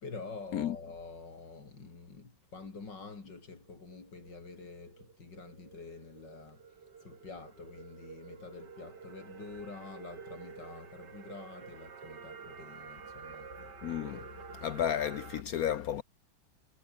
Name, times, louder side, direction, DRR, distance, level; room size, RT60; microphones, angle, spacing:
voice 1, 0.0-6.6 7.0-13.5, left 4 dB, 90° left, 4.4 m, -47 dB
sound 1, 3.4-15.4, right 6 dB, 75° right, 2.7 m, -50 dB
voice 2, 13.8-14.2 14.6-16.0, left 10 dB, 65° left, 1.1 m, -32 dB
omnidirectional pair, 1.9 m